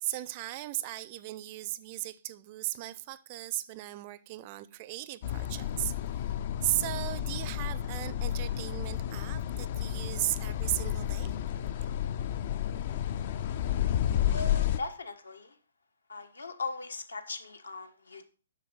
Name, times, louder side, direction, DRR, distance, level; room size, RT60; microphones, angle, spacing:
voice 1, 0.0-6.2 6.6-11.7, right 17 dB, 30° right, 0.5 m, -36 dB
sound 1, 5.2-14.8, left 10 dB, 40° left, 0.4 m, -31 dB
voice 2, 14.3-15.6 16.1-18.2, left 3 dB, 70° left, 1.3 m, -39 dB
7.5 x 6.3 x 4.7 m
figure-of-eight pair, 130°, 0 cm